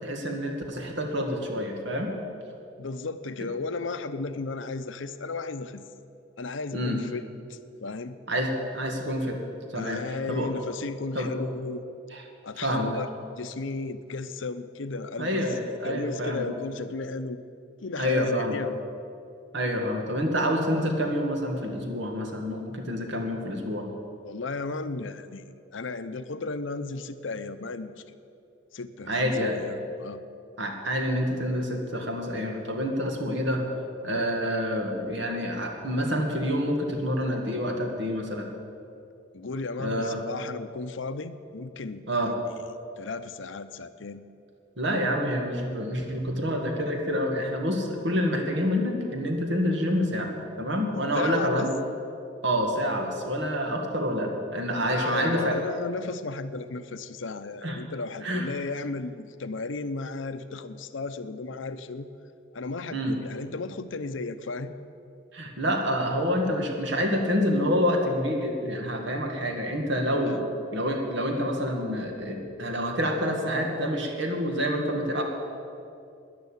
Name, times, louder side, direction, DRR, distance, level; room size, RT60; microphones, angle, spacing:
voice 1, 0.0-2.2 6.7-7.0 8.3-9.4 9.7-10.0 10.3-10.5 11.1-11.3 12.1-12.2 12.6-12.9 15.2-16.5 18.0-18.6 19.5-23.9 29.1-29.6 30.6-33.6 34.0-38.5 39.8-40.2 42.1-42.3 44.8-50.3 50.6-51.8 52.4-55.6 57.6-57.8 58.2-58.5 62.9-63.2 65.3-70.4 70.7-75.2, equal, 65° right, 3 dB, 2.1 m, -27 dB
voice 2, 2.8-5.8 6.4-8.2 9.7-11.9 12.4-13.1 13.4-15.5 15.8-17.4 17.8-18.8 24.2-28.0 28.7-30.2 39.3-42.3 43.0-44.2 51.1-51.7 54.9-62.1 62.5-64.7 70.3-70.4, left 3 dB, 80° left, 11 dB, 0.7 m, -34 dB
12.0 x 10.5 x 8.9 m, 2.6 s
head